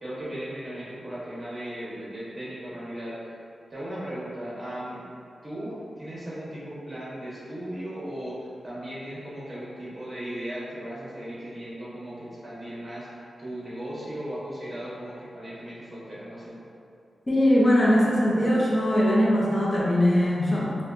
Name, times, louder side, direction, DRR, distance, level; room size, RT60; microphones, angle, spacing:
voice 1, 0.0-3.2 3.7-5.0 5.4-16.6, right 1 dB, 25° right, -8 dB, 1.2 m, -37 dB
voice 2, 17.3-20.8, equal, 35° left, -5 dB, 0.8 m, -21 dB
4.2 x 2.3 x 2.5 m, 2.4 s
cardioid pair, 75°, 0 cm